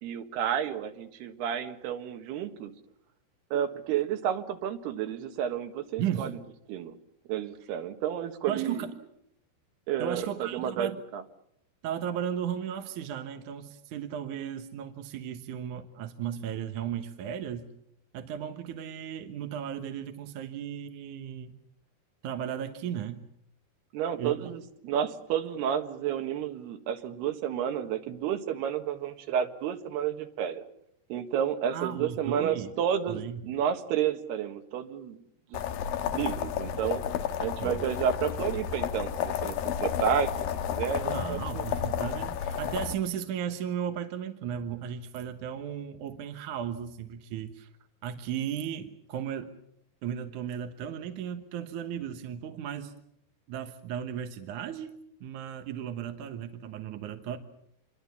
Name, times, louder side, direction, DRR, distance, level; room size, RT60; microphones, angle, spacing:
voice 1, 0.0-2.7 3.5-6.4 6.7-6.9 7.3-8.8 9.9-11.2 23.9-30.6 31.1-35.2 35.5-35.6 36.1-37.0 37.4-40.3 40.7-41.6, right 9 dB, 85° right, 7 dB, 3.6 m, -31 dB
voice 2, 6.0-6.3 8.5-8.9 10.0-11.0 11.8-17.7 18.1-21.6 22.2-23.2 24.2-24.4 31.7-32.7 33.1-33.4 37.6-37.8 41.0-47.7 48.0-49.5 50.0-52.9 53.5-54.9 55.2-57.4, right 9 dB, 65° right, 7 dB, 2.3 m, -35 dB
sound 1, 35.5-42.9, left 9 dB, 70° left, 2.8 m, -31 dB
27.5 x 22.5 x 7.1 m, 0.76 s
omnidirectional pair, 4.6 m